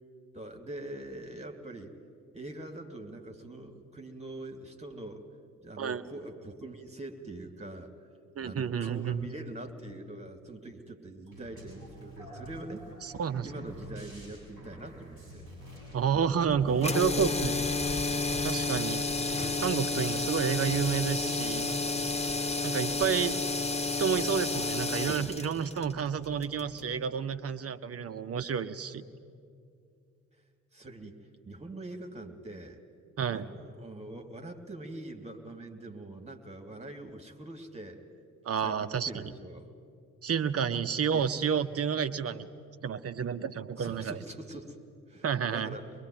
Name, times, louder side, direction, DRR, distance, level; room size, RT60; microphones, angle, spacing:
voice 1, 0.3-1.9 2.3-5.2 5.6-7.9 8.4-12.9 13.4-15.5 30.7-31.2 31.5-32.8 33.3-38.0 38.6-39.7 41.1-41.3 43.8-44.8 45.1-45.3 45.5-45.9, right 2 dB, 15° right, 5 dB, 2.8 m, -43 dB
voice 2, 8.4-9.3 13.0-13.7 15.9-17.6 18.4-19.1 19.6-21.7 22.6-23.4 24.0-29.0 33.2-33.4 38.4-39.3 40.2-42.5 42.8-44.2 45.2-45.8, right 7 dB, 35° right, 12 dB, 1.1 m, -30 dB
sound 1, 11.3-20.9, right 1 dB, 85° left, 7.2 m, -47 dB
sound 2, 16.8-26.9, left 3 dB, 15° left, 1.3 m, -31 dB
23.5 x 22.0 x 9.5 m, 2.3 s
figure-of-eight pair, 45°, 40 cm